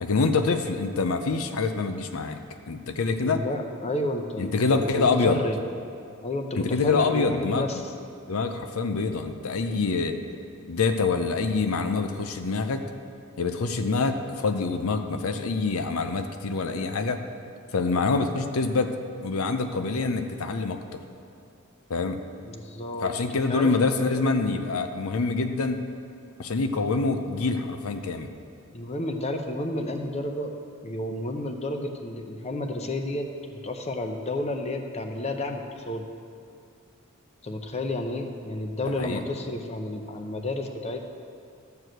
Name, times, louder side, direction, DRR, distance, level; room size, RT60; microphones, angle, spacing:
voice 1, 0.0-2.4 2.7-3.4 4.4-5.4 6.5-7.7 8.3-10.2 10.7-12.9 13.4-17.2 17.7-21.0 21.9-22.2 23.0-25.8 26.4-28.3 38.8-39.2, left 4 dB, 75° left, 7 dB, 0.6 m, -26 dB
voice 2, 3.2-5.6 6.2-7.9 22.4-23.1 23.5-24.4 28.7-30.5 30.8-36.1 37.4-41.1, left 1 dB, 30° left, 5 dB, 0.7 m, -31 dB
12.5 x 4.7 x 7.8 m, 2.4 s
head